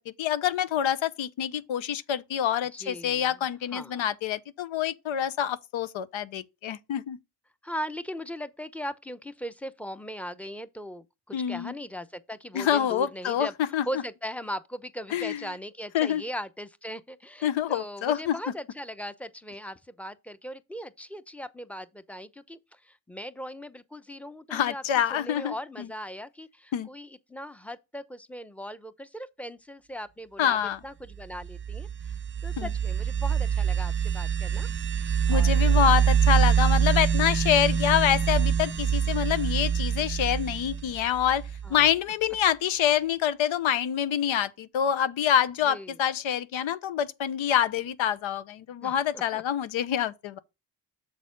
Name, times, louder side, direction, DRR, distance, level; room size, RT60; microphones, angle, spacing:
voice 1, 0.2-7.2 11.3-11.7 12.5-13.8 15.1-15.4 15.9-16.2 17.4-18.3 24.5-25.9 26.7-26.9 30.4-30.8 32.6-32.7 35.3-41.4 41.7-50.4, left 10 dB, 80° left, 0.8 m, -26 dB
voice 2, 2.7-3.4 3.7-4.0 7.6-13.5 13.8-24.8 25.1-30.6 30.8-36.0 41.6-41.9 45.6-46.0 48.8-49.4, equal, 5° left, 0.8 m, -39 dB
sound 1, 31.3-41.9, right 7 dB, 25° right, 0.4 m, -25 dB
7.2 x 4.1 x 5.2 m
cardioid pair, 60°, 47 cm